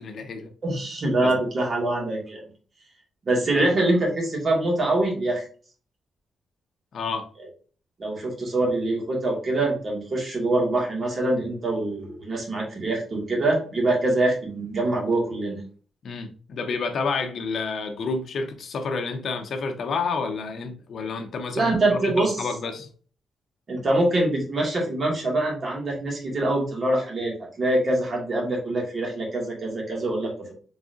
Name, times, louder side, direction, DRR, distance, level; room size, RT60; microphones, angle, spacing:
voice 1, 0.0-0.5 1.2-1.3 3.5-3.7 6.9-7.3 16.0-22.9, left 4 dB, 60° left, 0.8 m, -30 dB
voice 2, 0.6-2.4 3.3-5.4 8.0-15.6 21.5-22.5 23.7-30.5, right 2 dB, 40° right, 2.0 m, -24 dB
4.0 x 3.6 x 2.6 m
cardioid pair, 120°, 0 cm